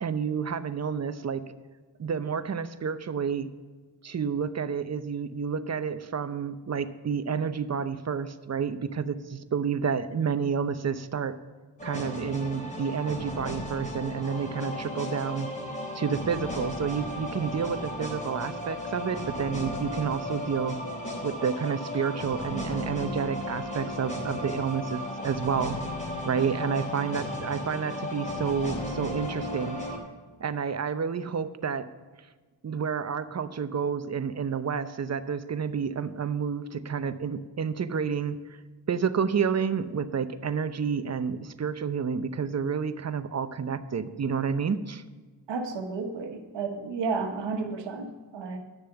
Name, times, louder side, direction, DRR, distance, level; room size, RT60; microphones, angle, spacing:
voice 1, 0.0-1.4 2.0-3.5 4.0-11.4 11.8-15.5 15.9-20.8 21.2-25.8 26.2-29.8 30.4-31.9 32.6-38.4 38.9-45.0, right 6 dB, 40° right, 12 dB, 0.7 m, -30 dB
sound 1, 11.8-30.0, left 1 dB, 20° left, 3.2 m, -35 dB
voice 2, 45.5-48.6, right 4 dB, 75° right, 5 dB, 1.4 m, -32 dB
9.6 x 6.8 x 6.8 m, 1.4 s
cardioid pair, 50°, 43 cm